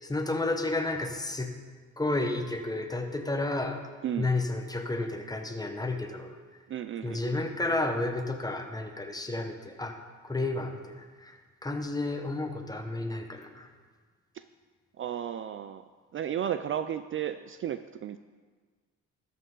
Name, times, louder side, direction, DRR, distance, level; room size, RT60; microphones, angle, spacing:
voice 1, 0.0-1.5 2.0-3.8 4.2-6.4 7.0-10.0 10.2-11.3 11.6-13.7, left 2 dB, 10° left, 5 dB, 1.1 m, -31 dB
voice 2, 6.7-7.4 14.4-14.5 15.0-15.8 16.1-18.2, right 9 dB, 45° right, 11 dB, 0.4 m, -33 dB
13.0 x 7.8 x 3.9 m, 1.5 s
cardioid pair, 90°, 30 cm